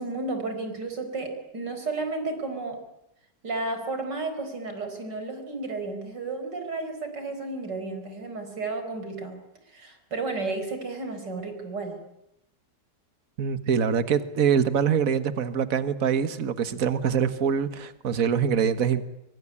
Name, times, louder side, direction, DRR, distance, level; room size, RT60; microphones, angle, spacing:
voice 1, 0.0-2.8 3.4-9.4 9.7-12.0, right 3 dB, 80° right, 5.6 m, -32 dB
voice 2, 13.4-19.0, right 7 dB, 55° right, 1.8 m, -24 dB
25.0 x 23.5 x 9.9 m
omnidirectional pair, 1.8 m